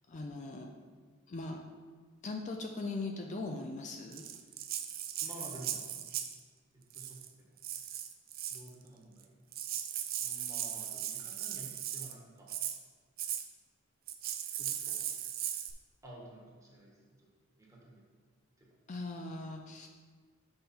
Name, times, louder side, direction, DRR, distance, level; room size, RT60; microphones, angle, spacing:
voice 1, 0.1-0.7 1.3-1.6 2.2-4.2 18.9-19.9, left 3 dB, 35° left, 2 dB, 0.4 m, -40 dB
Rattle (instrument), 4.1-6.4 6.9-7.3 7.6-8.7 9.2-9.3 9.5-12.1 12.5-12.8 13.2-13.4 14.1-15.7, right 10 dB, 45° right, 0.5 m, -38 dB
voice 2, 5.2-5.9 6.9-7.5 8.5-9.3 10.2-12.5 14.5-15.0 16.0-17.0 17.6-18.0 18.6-18.7, right 1 dB, 15° right, -4 dB, 1.4 m, -51 dB
5.6 x 5.5 x 4.3 m, 1.5 s
head